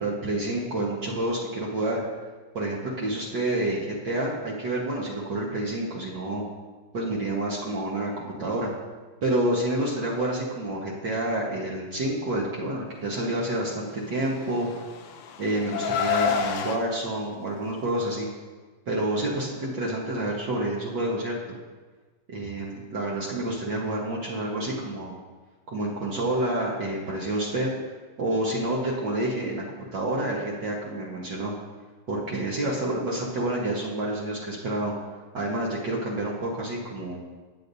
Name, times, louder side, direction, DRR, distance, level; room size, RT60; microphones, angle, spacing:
voice 1, 0.0-2.0 2.5-6.4 6.9-8.7 9.2-14.7 15.4-18.3 18.9-21.4 22.3-25.1 25.7-27.7 28.2-31.5 32.1-34.9 35.3-37.2, right 1 dB, 80° right, -4 dB, 1.0 m, -28 dB
Car, 14.3-16.8, left 7 dB, 75° left, 1.9 m, -28 dB
20.5 x 8.1 x 2.7 m, 1.4 s
omnidirectional pair, 4.1 m